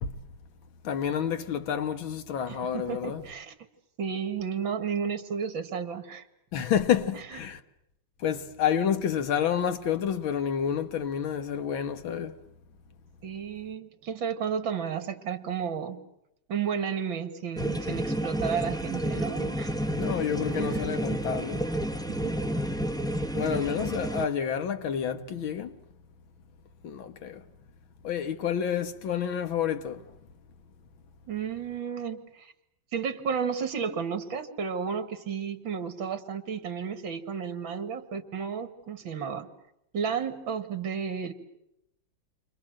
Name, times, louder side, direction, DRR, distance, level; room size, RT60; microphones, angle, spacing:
voice 1, 0.8-3.2 6.5-7.6 8.2-12.4 20.0-21.7 23.4-25.8 26.8-27.4 28.0-30.0, left 8 dB, 75° left, 2.2 m, -29 dB
voice 2, 2.5-3.5 4.0-6.2 7.1-7.2 13.2-16.0 16.5-19.8 20.5-20.8 22.1-22.4 31.3-32.5 32.9-39.5 39.9-41.3, right 7 dB, 70° right, 2.7 m, -32 dB
sound 1, 17.6-24.3, right 1 dB, 5° left, 0.6 m, -30 dB
29.5 x 25.5 x 7.7 m
omnidirectional pair, 2.2 m